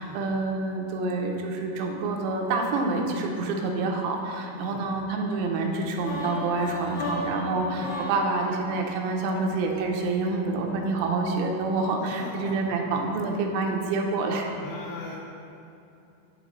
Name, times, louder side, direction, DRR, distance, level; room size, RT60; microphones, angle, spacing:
voice 1, 0.0-14.5, right 3 dB, 85° right, 1 dB, 2.7 m, -27 dB
voice 2, 4.5-4.8 7.6-7.9 12.1-13.0 14.6-15.2, left 2 dB, 80° left, -3 dB, 2.0 m, -40 dB
sound 1, 6.0-10.0, left 1 dB, 65° left, 3.0 m, -35 dB
11.0 x 4.1 x 3.0 m, 2.7 s
omnidirectional pair, 4.7 m